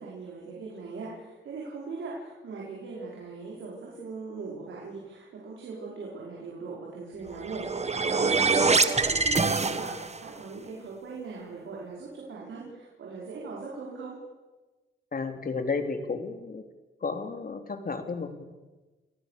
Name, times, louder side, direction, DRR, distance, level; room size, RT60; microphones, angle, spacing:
voice 1, 0.0-14.2, right 4 dB, 80° right, -3 dB, 5.3 m, -40 dB
sound 1, 7.3-10.3, right 4 dB, 35° right, 1.6 m, -25 dB
voice 2, 15.1-16.6 17.0-18.4, left 4 dB, 45° left, 7 dB, 3.0 m, -32 dB
29.5 x 18.0 x 6.7 m, 1.2 s
cardioid pair, 85°, 20 cm